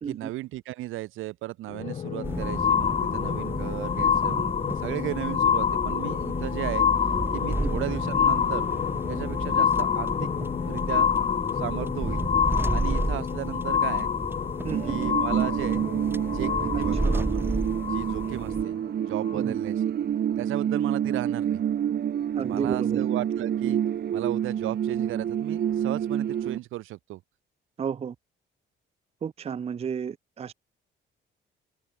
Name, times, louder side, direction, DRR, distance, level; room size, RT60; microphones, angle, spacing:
voice 1, 0.1-6.9 7.3-8.7 9.1-10.3 10.7-11.1 11.6-12.2 12.7-14.1 14.8-15.8 16.2-17.4 17.9-19.8 20.4-21.6 22.4-23.8 24.1-27.2, right 16 dB, 85° right, 1.0 m, -35 dB
sound 1, 1.7-18.6 19.3-19.4, left 8 dB, 35° left, 0.4 m, -27 dB
sound 2, 2.2-18.6, right 2 dB, 10° right, 2.4 m, -33 dB
voice 2, 14.6-15.0 19.3-19.6 22.3-23.0 27.8-28.2 29.2-30.5, right 7 dB, 30° right, 0.5 m, -32 dB
sound 3, 14.7-26.6, right 9 dB, 55° right, 1.4 m, -28 dB
open air
cardioid pair, 90°, 20 cm